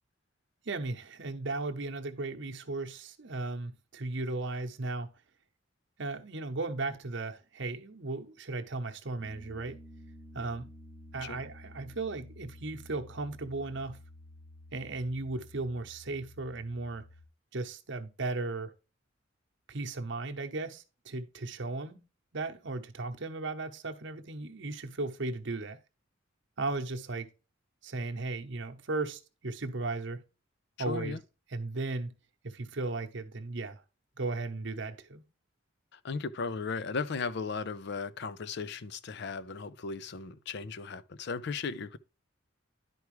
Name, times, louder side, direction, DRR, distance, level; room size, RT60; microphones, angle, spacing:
voice 1, 0.6-5.1 6.0-9.8 10.3-10.7 11.1-14.0 14.7-17.0 17.5-18.7 19.7-22.0 22.3-25.8 26.6-27.3 27.8-30.2 30.8-31.2 31.5-32.1 32.4-33.8 34.2-35.2, right 3 dB, 60° right, 0.9 m, -36 dB
Piano, 9.2-17.2, left 1 dB, 15° right, 0.8 m, -52 dB
voice 2, 30.9-31.2 35.9-42.0, left 5 dB, 55° left, 0.5 m, -36 dB
11.0 x 4.7 x 3.1 m
head